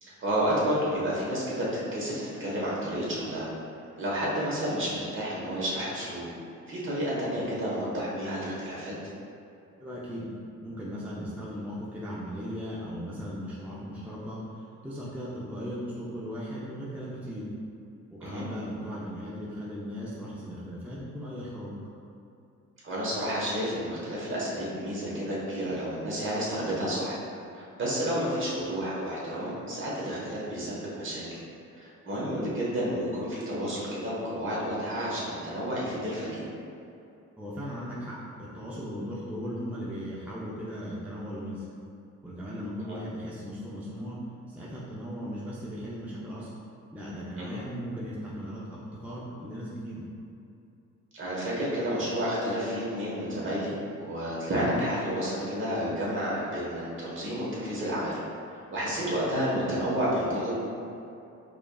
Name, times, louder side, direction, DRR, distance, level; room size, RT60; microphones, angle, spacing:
voice 1, 0.0-3.5 4.0-6.3 6.7-8.9 18.2-18.4 22.8-27.2 27.5-31.2 31.7-36.4 42.8-43.0 47.4-47.6 51.1-58.2 58.7-60.5, equal, 40° right, -7 dB, 1.2 m, -30 dB
voice 2, 9.8-10.3 10.6-17.5 18.1-21.7 37.4-41.7 42.2-44.2 44.5-46.5 46.9-50.1, equal, 5° right, -7 dB, 0.5 m, -37 dB
4.9 x 2.4 x 2.3 m, 2.7 s
cardioid pair, 90°, 30 cm